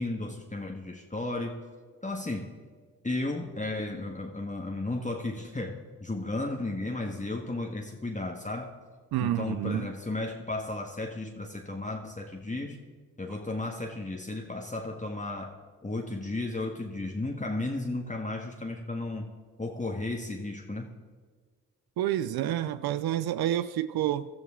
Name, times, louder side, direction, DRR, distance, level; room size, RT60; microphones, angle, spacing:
voice 1, 0.0-1.6 2.0-2.5 3.0-8.7 9.2-12.8 13.2-19.3 19.6-20.9, left 2 dB, 20° left, 1.6 m, -34 dB
voice 2, 9.1-9.9 22.0-24.3, right 12 dB, 75° right, 0.6 m, -29 dB
17.0 x 12.5 x 3.7 m
supercardioid pair, 40°, 37 cm